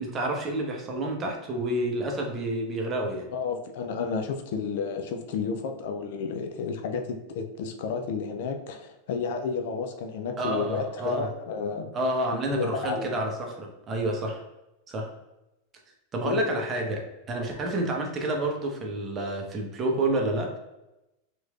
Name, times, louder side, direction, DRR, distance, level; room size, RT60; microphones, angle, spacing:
voice 1, 0.0-3.2 10.4-11.3 11.9-14.4 14.9-15.1 16.1-17.0 17.3-20.6, right 1 dB, 30° right, 1 dB, 0.8 m, -29 dB
voice 2, 3.3-11.9 12.5-13.1 16.2-16.6 17.5-17.6, left 5 dB, 60° left, 5 dB, 0.4 m, -31 dB
3.0 x 3.0 x 2.4 m, 0.93 s
figure-of-eight pair, 90°, 0 cm